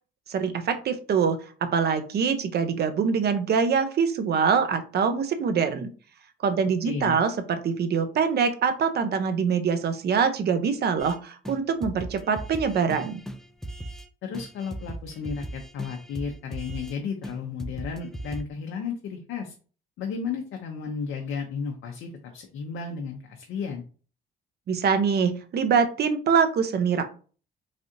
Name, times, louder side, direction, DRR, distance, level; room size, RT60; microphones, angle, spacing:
voice 1, 0.3-5.9 6.4-13.2 24.7-27.0, right 6 dB, 55° right, 9 dB, 0.6 m, -24 dB
voice 2, 6.8-7.2 14.2-19.5 20.0-23.8, left 5 dB, 80° left, 3 dB, 0.6 m, -33 dB
sound 1, 11.0-11.2 11.4-11.6 11.8-14.1 14.3-16.9 17.2-17.3 17.6-18.4, right 1 dB, ahead, 0.3 m, -38 dB
3.3 x 2.5 x 2.7 m, 0.39 s
cardioid pair, 90°, 20 cm